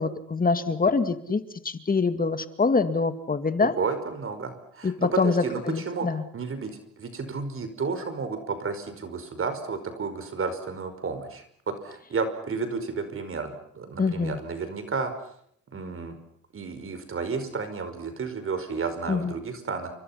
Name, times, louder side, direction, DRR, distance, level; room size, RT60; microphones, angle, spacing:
voice 1, 0.0-3.7 4.8-6.2 14.0-14.4 19.1-19.3, left 4 dB, 30° left, 10 dB, 2.3 m, -25 dB
voice 2, 3.6-5.6 5.9-6.1 6.3-15.1 15.7-16.2 16.5-19.9, right 4 dB, 45° right, 9 dB, 5.1 m, -32 dB
29.5 x 24.5 x 5.9 m, 0.67 s
cardioid pair, 90°, 30 cm